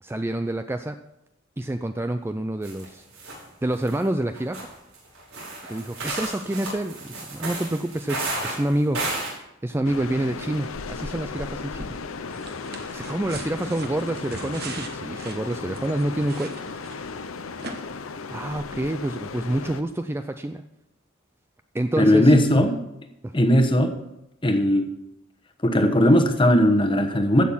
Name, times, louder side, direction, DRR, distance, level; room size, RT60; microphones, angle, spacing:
voice 1, 0.0-1.0 1.6-3.1 3.6-4.7 5.7-9.0 9.6-12.0 12.6-16.6 18.3-20.6 21.7-22.3 23.2-23.3, right 1 dB, 10° right, 8 dB, 0.3 m, -28 dB
sound 1, 2.6-2.9 3.1-3.4 3.8-3.9 4.3-9.3, right 2 dB, 85° right, 5.5 m, -32 dB
sound 2, 9.8-19.8, left 4 dB, 85° left, 0.8 m, -35 dB
sound 3, 12.3-17.2 17.6-17.7, right 4 dB, 50° right, 1.3 m, -40 dB
voice 2, 22.0-22.8 23.3-24.0 24.4-24.9 25.6-27.4, equal, 25° left, 6 dB, 1.1 m, -18 dB
15.5 x 6.5 x 5.7 m, 0.87 s
head